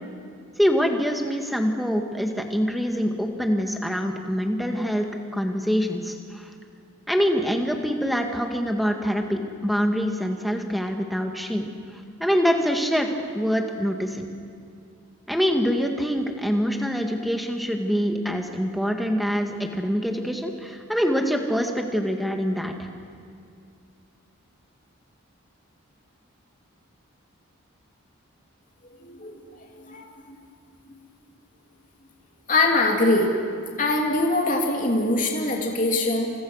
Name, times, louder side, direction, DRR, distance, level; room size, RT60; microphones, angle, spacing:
voice 1, 0.6-5.1 5.3-6.5 7.1-14.3 15.3-22.9, equal, ahead, 3 dB, 1.8 m, -25 dB
voice 2, 29.0-29.4 29.7-30.1 30.9-31.0 32.5-33.4 33.8-36.3, left 2 dB, 35° left, 0 dB, 3.1 m, -23 dB
29.5 x 27.0 x 6.5 m, 2.3 s
head